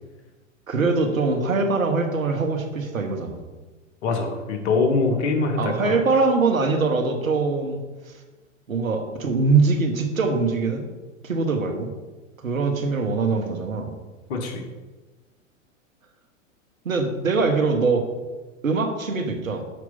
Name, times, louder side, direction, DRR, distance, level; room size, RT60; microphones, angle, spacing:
voice 1, 0.7-3.4 5.6-7.8 8.1-8.2 8.7-10.9 11.2-11.9 12.4-13.9 16.8-18.1 18.6-19.6, right 4 dB, 85° right, 5 dB, 1.2 m, -22 dB
voice 2, 4.0-6.0 14.3-14.6, left 3 dB, 55° left, 3 dB, 1.6 m, -23 dB
6.6 x 4.6 x 5.5 m, 1.2 s
hypercardioid pair, 100°, 40 cm